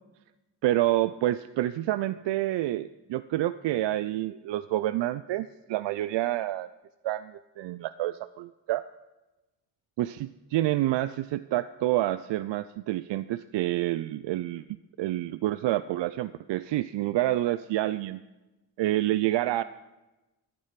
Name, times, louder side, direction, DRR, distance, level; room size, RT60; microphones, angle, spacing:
voice 1, 0.6-6.7 7.0-8.8 10.0-14.7 15.0-18.2 18.8-19.6, right 15 dB, 60° right, 15 dB, 0.5 m, -28 dB
13.5 x 9.4 x 5.8 m, 1.1 s
hypercardioid pair, 40°, 49 cm